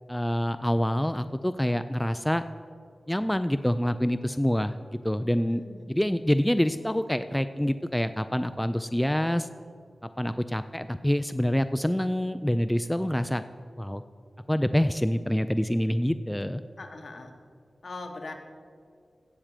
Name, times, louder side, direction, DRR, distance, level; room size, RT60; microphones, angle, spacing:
voice 1, 0.1-2.4 3.1-4.8 5.0-5.6 5.9-9.5 10.2-13.4 13.8-14.0 14.5-16.6, equal, 5° left, 10 dB, 0.3 m, -26 dB
voice 2, 5.4-6.0 16.8-17.3 17.8-18.3, left 3 dB, 60° left, 3 dB, 1.3 m, -41 dB
16.5 x 7.3 x 5.0 m, 2.3 s
wide cardioid pair, 95°, 0 cm